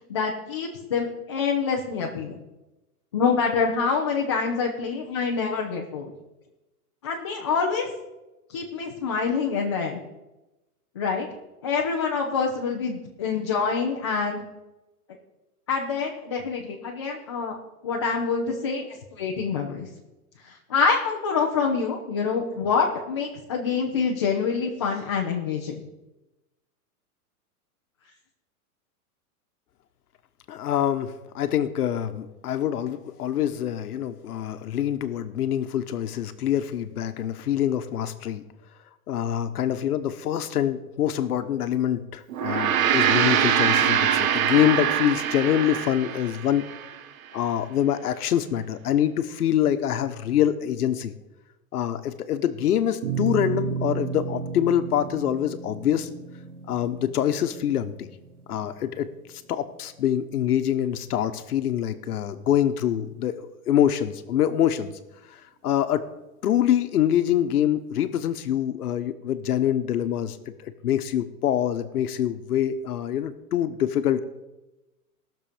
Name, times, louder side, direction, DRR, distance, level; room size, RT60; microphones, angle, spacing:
voice 1, 0.1-2.3 3.1-6.1 7.0-7.9 8.5-10.0 11.0-11.3 11.6-14.4 15.7-17.5 17.8-19.9 20.4-25.8, left 5 dB, 20° left, -2 dB, 0.6 m, -26 dB
voice 2, 30.5-38.4 39.1-46.7 47.3-51.1 51.7-56.1 56.7-58.1 58.5-59.1 59.5-64.9 65.3-66.0 66.4-74.2, left 10 dB, 80° left, 10 dB, 1.2 m, -25 dB
Gong, 42.3-46.9, right 9 dB, 65° right, 1.1 m, -23 dB
sound 1, 53.0-59.6, right 5 dB, 85° right, 2.4 m, -33 dB
18.5 x 6.8 x 5.1 m, 1.0 s
supercardioid pair, 180°, 45 cm